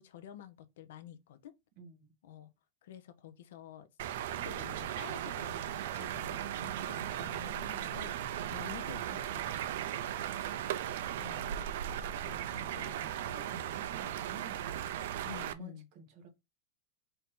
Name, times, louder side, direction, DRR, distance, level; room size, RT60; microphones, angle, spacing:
voice 1, 0.0-1.5 2.2-2.5 2.8-9.9 11.2-11.5 12.7-13.0 15.2-15.9, left 10 dB, 75° left, 0.7 m, -50 dB
voice 2, 1.8-2.1 6.6-6.9 12.2-14.7 15.3-16.3, right 4 dB, 40° right, 1.3 m, -53 dB
sound 1, 4.0-15.5, right 11 dB, 60° right, 0.5 m, -37 dB
4.4 x 2.7 x 3.6 m
supercardioid pair, 175°, 0 cm